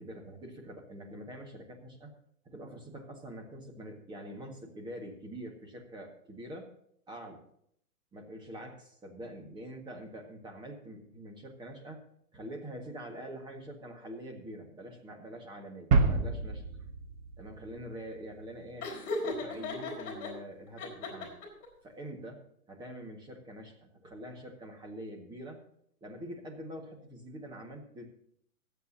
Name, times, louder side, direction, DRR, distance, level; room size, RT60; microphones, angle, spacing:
voice 1, 0.0-2.1 2.4-6.7 7.1-7.4 8.1-12.0 12.3-16.6 17.4-18.9 19.2-21.3 21.8-22.4 22.7-25.6 26.0-28.1, equal, 10° right, 2 dB, 1.7 m, -45 dB
sound 1, 15.9-18.6, right 4 dB, 25° right, 1.1 m, -29 dB
Laughter, 18.8-20.3 20.8-21.7, left 3 dB, 25° left, 4.4 m, -36 dB
24.0 x 8.3 x 2.8 m, 0.68 s
hypercardioid pair, 150°, 45 cm